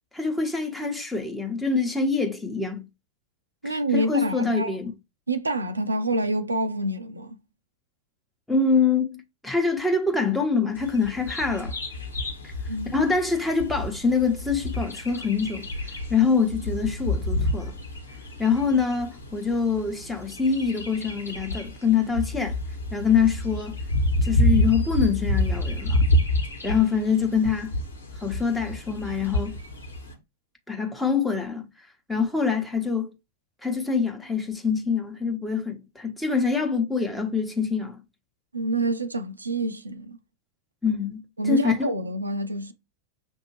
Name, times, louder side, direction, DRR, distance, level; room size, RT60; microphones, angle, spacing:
voice 1, 0.1-2.9 3.6-4.9 8.5-11.8 12.4-12.5 12.9-15.7 16.1-17.7 18.4-22.6 22.9-23.8 24.2-26.0 26.6-27.8 28.2-29.6 30.7-31.7 32.1-33.1 33.6-38.0 40.8-41.9, left 5 dB, 5° left, 1.0 m, -25 dB
voice 2, 3.6-4.7 5.3-7.4 12.7-12.9 38.5-40.2 41.4-42.7, right 2 dB, 80° right, 0.5 m, -27 dB
Bird vocalization bird call bird song, 10.7-30.1, left 1 dB, 75° left, 1.5 m, -28 dB
6.5 x 2.6 x 3.1 m
figure-of-eight pair, 90°, 0 cm